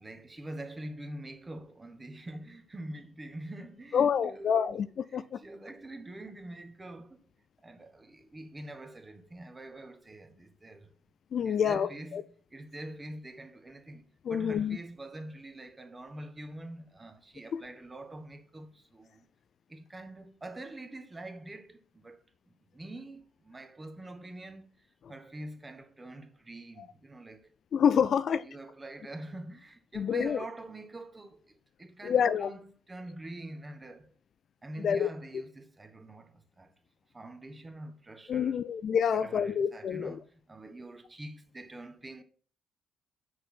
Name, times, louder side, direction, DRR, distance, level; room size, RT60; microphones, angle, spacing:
voice 1, 0.0-4.8 5.1-7.2 7.6-10.9 11.4-12.2 12.5-19.3 19.7-27.5 28.1-28.2 28.4-34.1 34.6-36.7 37.1-38.6 39.1-42.2, right 1 dB, 25° right, 1.3 m, -45 dB
voice 2, 3.9-5.4 11.3-12.2 14.2-14.8 17.5-17.6 27.7-28.4 29.9-30.5 32.0-32.5 34.8-35.1 38.3-40.2, left 7 dB, 55° left, 0.4 m, -27 dB
6.2 x 4.2 x 6.2 m
hypercardioid pair, 45°, 0 cm